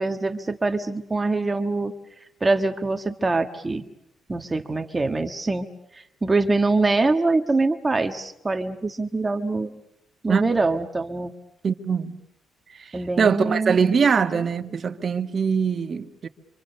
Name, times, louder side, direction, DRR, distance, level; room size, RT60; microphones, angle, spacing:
voice 1, 0.0-1.9 2.4-3.8 4.3-5.7 5.9-9.7 10.2-11.3 12.9-13.7, right 3 dB, 20° right, 1.5 m, -24 dB
voice 2, 11.6-12.2 12.7-16.3, right 6 dB, 45° right, 1.7 m, -23 dB
27.0 x 26.0 x 6.8 m
cardioid pair, 90°, 0 cm